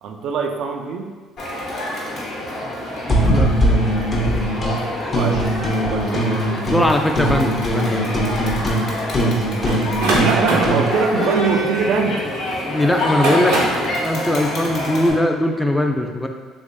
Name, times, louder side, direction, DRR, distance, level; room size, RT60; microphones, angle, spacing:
voice 1, 0.0-1.1 5.1-5.4 5.9-6.4 10.1-12.2, right 5 dB, 70° right, 3 dB, 0.3 m, -22 dB
Crowd, 1.4-15.1, left 1 dB, 65° left, 1.0 m, -27 dB
sound 1, 3.1-4.8 5.1-6.9 7.2-10.9, right 1 dB, 35° left, 0.7 m, -20 dB
voice 2, 6.7-8.0 12.7-13.6 14.0-16.3, left 1 dB, 10° left, 3 dB, 0.4 m, -20 dB
sound 2, 9.7-12.4 13.0-13.9, right 2 dB, 90° right, 0.7 m, -22 dB
3.3 x 3.0 x 2.6 m, 1.5 s
supercardioid pair, 80°, 0 cm